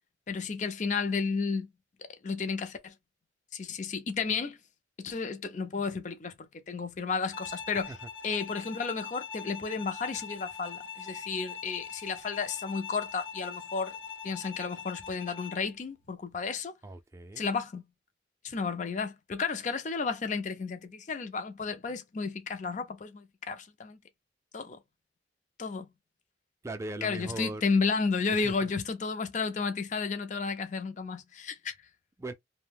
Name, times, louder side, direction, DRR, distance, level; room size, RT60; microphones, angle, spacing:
voice 1, 0.3-1.7 2.0-2.9 3.5-4.6 5.0-7.9 8.2-14.0 14.2-16.7 17.4-17.8 18.4-24.0 24.5-24.8 25.6-25.9 27.0-31.7, left 5 dB, 40° left, 0.5 m, -32 dB
Bowed string instrument, 7.3-15.7, left 7 dB, 70° left, 0.7 m, -42 dB
voice 2, 16.8-17.5 26.6-27.6 28.3-28.7 32.2-32.3, right 2 dB, 15° right, 0.4 m, -39 dB
2.6 x 2.1 x 3.4 m
head